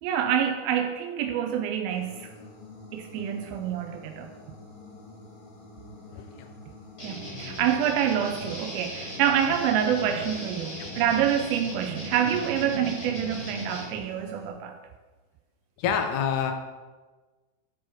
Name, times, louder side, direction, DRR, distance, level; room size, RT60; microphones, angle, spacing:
voice 1, 0.0-2.3 2.9-4.3 7.0-14.8, right 9 dB, 90° right, 2.4 m, -27 dB
sound 1, 1.9-14.5, left 2 dB, 50° left, 2.5 m, -48 dB
voice 2, 6.2-6.5 10.8-10.9 15.8-16.5, left 7 dB, 80° left, 1.9 m, -27 dB
sound 2, 7.0-13.8, equal, 30° left, 1.3 m, -38 dB
10.5 x 4.6 x 4.7 m
omnidirectional pair, 4.1 m